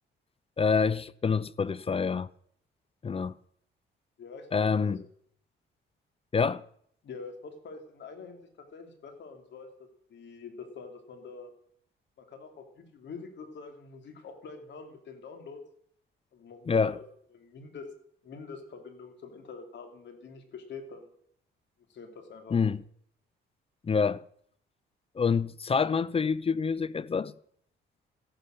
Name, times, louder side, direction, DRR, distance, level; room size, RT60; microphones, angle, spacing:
voice 1, 0.6-2.3 3.0-3.3 4.5-5.0 6.3-6.6 16.7-17.0 22.5-22.8 23.8-24.2 25.2-27.3, left 5 dB, 30° left, 0.6 m, -27 dB
voice 2, 4.2-5.0 7.0-8.4 8.7-9.7 10.1-11.5 12.2-15.6 16.3-17.0 17.3-17.9 18.2-21.1 21.9-22.7, left 4 dB, 65° left, 3.2 m, -45 dB
14.0 x 11.5 x 6.6 m
cardioid pair, 90°, 20 cm